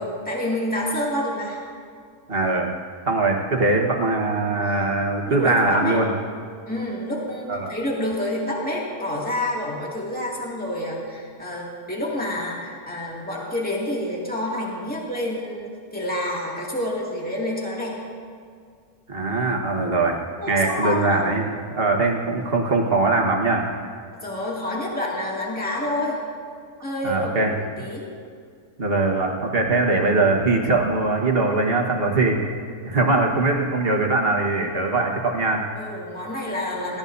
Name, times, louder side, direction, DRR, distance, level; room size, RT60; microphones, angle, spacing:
voice 1, 0.0-1.6 4.7-5.0 5.2-6.0 6.7-18.0 20.4-21.3 24.2-26.2 26.8-28.1 35.7-37.0, left 1 dB, 5° left, -4 dB, 2.2 m, -28 dB
voice 2, 2.3-2.7 3.1-6.1 7.5-7.7 19.1-20.2 20.5-23.7 27.0-27.5 28.8-32.4 32.8-35.7, right 3 dB, 40° right, 1 dB, 1.6 m, -21 dB
19.0 x 16.0 x 2.7 m, 2.2 s
omnidirectional pair, 1.6 m